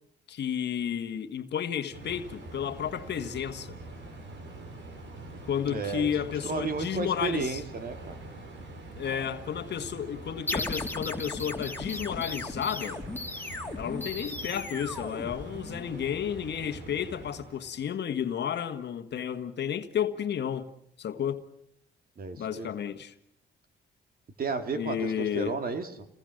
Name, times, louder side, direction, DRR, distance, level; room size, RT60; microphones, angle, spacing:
voice 1, 0.3-3.8 5.5-7.6 8.9-13.0 13.7-20.7 21.0-21.4 22.4-23.1 24.7-25.6, left 8 dB, 60° left, 1.6 m, -32 dB
sound 1, 1.9-17.8, right 2 dB, 70° right, 5.2 m, -44 dB
voice 2, 5.6-8.2 22.2-22.7 24.4-26.1, right 4 dB, 45° right, 2.5 m, -33 dB
sound 2, 10.5-15.9, left 2 dB, 10° left, 2.9 m, -36 dB
29.5 x 20.0 x 6.5 m
cardioid pair, 90°, 20 cm